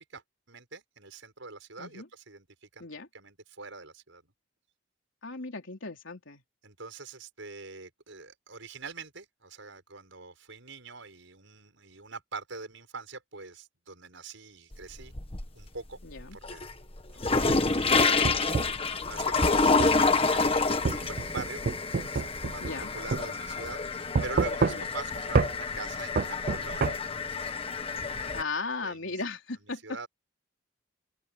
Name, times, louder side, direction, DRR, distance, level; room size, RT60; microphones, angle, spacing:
voice 1, 0.1-2.9 3.1-4.2 6.6-15.1 15.5-16.0 16.3-16.7 17.3-18.4 19.0-21.6 22.1-27.6 28.2-28.4 28.8-29.2 29.8-30.1, right 4 dB, 85° right, 6.1 m, -44 dB
voice 2, 5.2-6.4 16.0-16.4 22.6-22.9 24.7-24.9 28.3-30.0, left 3 dB, 85° left, 3.5 m, -36 dB
sound 1, 14.7-15.7 16.1-28.4, left 4 dB, 30° left, 1.6 m, -28 dB
sound 2, 17.5-18.8 19.8-20.0 20.8-22.8 23.1-23.2 24.1-25.0 25.3-25.5 26.2-26.9, right 4 dB, 50° right, 0.4 m, -28 dB
open air
head